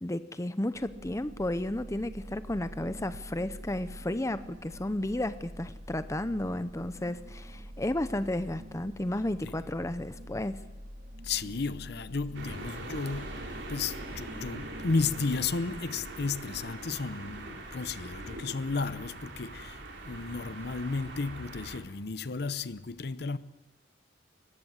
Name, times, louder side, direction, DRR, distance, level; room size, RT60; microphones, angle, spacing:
voice 1, 0.0-10.6, left 1 dB, 15° left, 0.7 m, -33 dB
sound 1, 0.7-16.6, equal, 45° right, 2.1 m, -46 dB
voice 2, 11.2-23.4, left 4 dB, 60° left, 0.7 m, -33 dB
sound 2, 12.3-21.8, right 2 dB, 65° right, 3.9 m, -42 dB
23.5 x 20.0 x 8.0 m
head